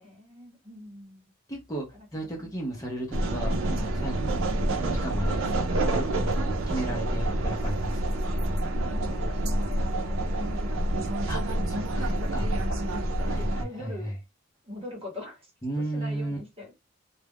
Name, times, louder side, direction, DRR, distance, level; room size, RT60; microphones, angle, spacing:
voice 1, 0.0-1.3 1.9-2.1 2.3-2.5 3.7-4.0 8.8-11.5 12.2-12.4 12.7-14.1 14.6-15.5 15.9-16.7, left 2 dB, 30° right, 1.0 m, -43 dB
voice 2, 1.5-1.9 2.1-8.0 11.3-12.5 13.3-14.1 15.6-16.4, right 1 dB, 15° left, 0.6 m, -35 dB
sound 1, 3.1-13.6, right 1 dB, 75° right, 0.5 m, -27 dB
2.3 x 2.0 x 3.4 m
head